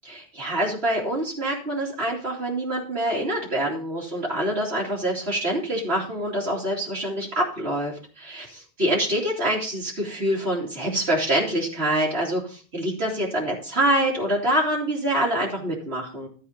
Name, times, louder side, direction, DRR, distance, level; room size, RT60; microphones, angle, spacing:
voice 1, 0.0-16.3, right 1 dB, 75° right, -5 dB, 3.0 m, -25 dB
13.5 x 4.6 x 5.6 m, 0.40 s
omnidirectional pair, 1.1 m